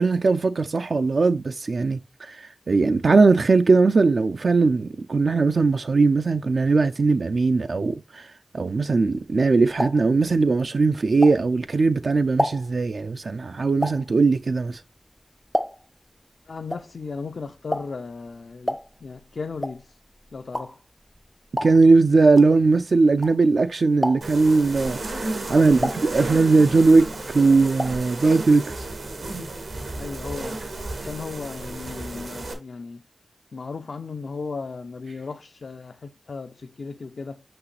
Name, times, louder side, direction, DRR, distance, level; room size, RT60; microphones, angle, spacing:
voice 1, 0.0-14.8 21.6-28.9, right 3 dB, 65° right, 0.3 m, -19 dB
sound 1, 9.2-11.8 12.1-16.1 16.3-23.6 23.9-24.5 25.0-26.7 27.0-28.1 28.4-28.5 28.7-28.8, equal, 5° left, 0.4 m, -31 dB
voice 2, 16.5-20.0 20.3-20.8 25.5-26.2 28.2-28.3 30.0-30.6 31.0-33.0 33.5-37.4, left 4 dB, 70° left, 0.4 m, -36 dB
sound 2, 24.2-32.5, right 2 dB, 90° right, 1.7 m, -33 dB
6.0 x 5.7 x 3.2 m
wide cardioid pair, 80°, 0 cm